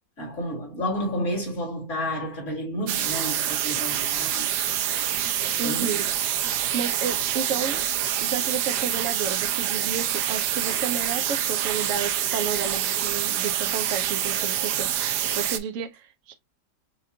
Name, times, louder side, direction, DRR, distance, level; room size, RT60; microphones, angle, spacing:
voice 1, 0.2-4.5 5.6-5.9, equal, 45° left, 2.4 m, -31 dB
sound 1, 2.9-15.6, right 10 dB, 75° right, 1.1 m, -26 dB
voice 2, 5.6-6.1 6.7-7.8 8.2-16.3, right 6 dB, 60° right, 0.9 m, -32 dB
5.8 x 2.5 x 2.7 m
omnidirectional pair, 1.9 m